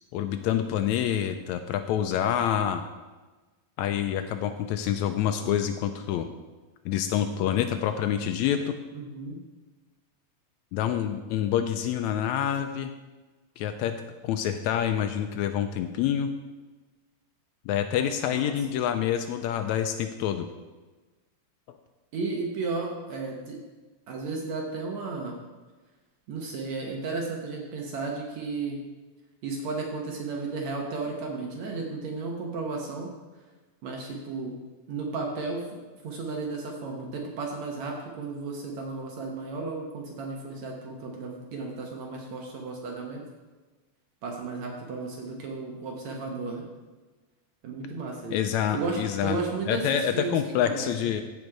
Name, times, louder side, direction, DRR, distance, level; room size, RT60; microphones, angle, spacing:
voice 1, 0.1-2.8 3.8-6.3 6.9-8.7 10.7-12.9 13.6-14.0 14.2-16.3 17.7-20.5 48.3-49.4 49.7-51.2, left 10 dB, 80° left, 8 dB, 1.7 m, -27 dB
voice 2, 8.9-9.4 17.9-18.5 22.1-23.6 24.1-25.4 26.3-28.8 29.4-33.1 33.8-34.6 34.9-35.6 36.0-43.2 44.2-46.7 47.6-48.4 48.7-51.1, right 3 dB, 65° right, 0 dB, 2.2 m, -34 dB
15.0 x 5.2 x 4.6 m, 1.2 s
omnidirectional pair, 3.6 m